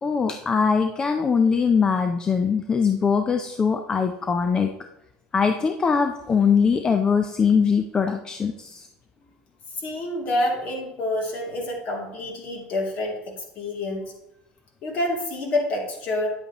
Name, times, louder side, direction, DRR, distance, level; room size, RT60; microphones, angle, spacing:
voice 1, 0.0-4.7 5.3-8.9, left 6 dB, 20° left, 6 dB, 0.5 m, -22 dB
voice 2, 9.8-14.0 14.8-16.3, left 1 dB, 45° left, 0 dB, 2.7 m, -27 dB
9.9 x 8.0 x 3.0 m, 0.87 s
cardioid pair, 135°, 4 cm